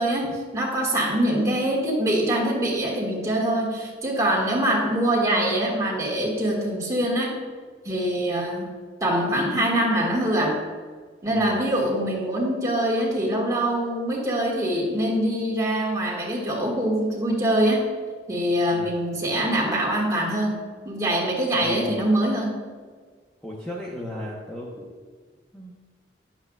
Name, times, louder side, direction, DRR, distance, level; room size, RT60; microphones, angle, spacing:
voice 1, 0.0-7.4 7.8-8.7 9.0-10.6 11.2-17.9 18.3-20.6 20.8-22.5, right 1 dB, 20° right, -3 dB, 1.8 m, -24 dB
voice 2, 11.3-11.6 18.7-19.0 21.5-22.0 23.4-24.9 25.5-25.7, left 1 dB, 5° left, -5 dB, 0.9 m, -35 dB
10.0 x 7.9 x 2.3 m, 1.5 s
head